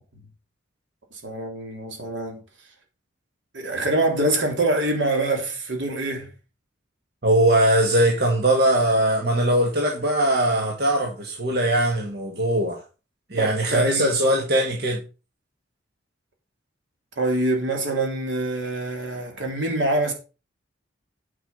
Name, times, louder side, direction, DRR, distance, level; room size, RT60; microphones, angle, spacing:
voice 1, 1.2-2.4 3.5-6.3 13.4-14.2 17.2-20.1, right 2 dB, 75° right, 3.2 m, -25 dB
voice 2, 7.2-12.8 13.3-15.0, right 1 dB, 55° right, 2.0 m, -21 dB
9.6 x 6.0 x 5.5 m
head